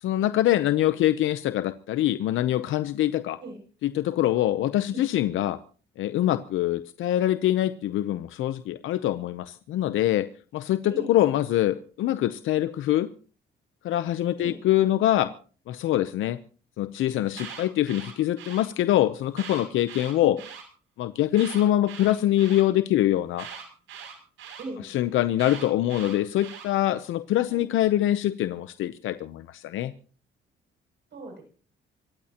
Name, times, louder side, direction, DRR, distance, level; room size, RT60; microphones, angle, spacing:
voice 1, 0.0-3.4 3.8-5.6 6.0-13.1 13.8-15.3 15.7-16.4 16.8-20.4 21.0-23.5 24.9-29.9, left 13 dB, 80° left, 12 dB, 0.8 m, -24 dB
voice 2, 10.9-11.2 14.4-14.6 20.2-20.4 24.6-24.9 27.5-27.7 31.1-31.4, right 2 dB, 60° right, 4 dB, 7.2 m, -39 dB
Alarm, 17.2-18.6 19.3-20.6 21.3-22.6 23.4-24.6 25.4-26.7, right 7 dB, 90° right, 6.9 m, -41 dB
25.5 x 15.0 x 2.9 m, 0.40 s
cardioid pair, 90°, 20 cm